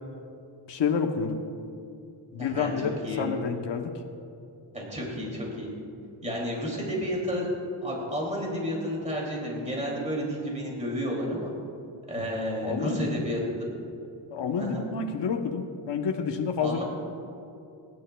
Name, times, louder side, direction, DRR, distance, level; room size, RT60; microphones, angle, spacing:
voice 1, 0.7-1.4 2.3-3.9 6.2-6.4 12.1-12.3 12.6-13.2 14.3-16.8, left 6 dB, 65° left, 3 dB, 0.9 m, -29 dB
voice 2, 2.4-2.8 3.0-3.3 4.7-5.7 6.2-7.5 7.8-11.5 12.1-13.4 14.6-14.8 16.6-16.8, equal, 15° right, -3 dB, 2.5 m, -31 dB
26.0 x 11.0 x 2.3 m, 2.6 s
wide cardioid pair, 155°, 46 cm